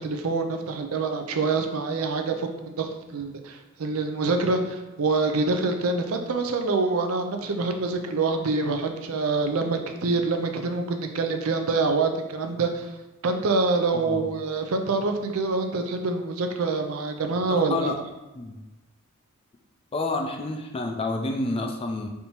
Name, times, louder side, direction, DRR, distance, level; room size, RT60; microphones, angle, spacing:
voice 1, 0.0-12.9 13.2-17.9, right 3 dB, 70° right, 5 dB, 0.5 m, -26 dB
voice 2, 17.5-18.0 18.4-18.6 19.9-22.1, left 2 dB, 25° left, 4 dB, 0.4 m, -29 dB
3.4 x 2.8 x 4.3 m, 1.1 s
head